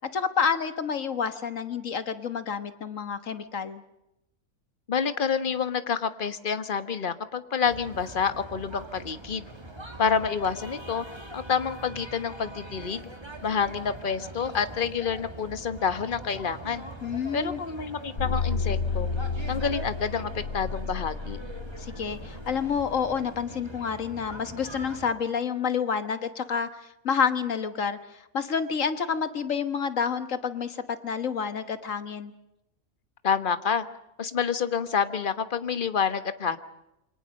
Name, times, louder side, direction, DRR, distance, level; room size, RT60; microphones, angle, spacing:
voice 1, 0.1-3.8 17.0-17.6 21.8-32.3, left 6 dB, 60° left, 11 dB, 1.7 m, -29 dB
voice 2, 4.9-9.4 10.0-11.0 11.3-13.1 13.4-16.8 17.3-19.1 19.5-21.4 33.2-33.8 34.2-36.6, left 6 dB, 35° left, 11 dB, 1.3 m, -28 dB
sound 1, 7.7-25.1, right 1 dB, 15° right, 2.2 m, -42 dB
sound 2, 18.2-23.1, left 4 dB, 75° left, 4.0 m, -32 dB
28.0 x 24.5 x 6.5 m, 0.89 s
omnidirectional pair, 1.6 m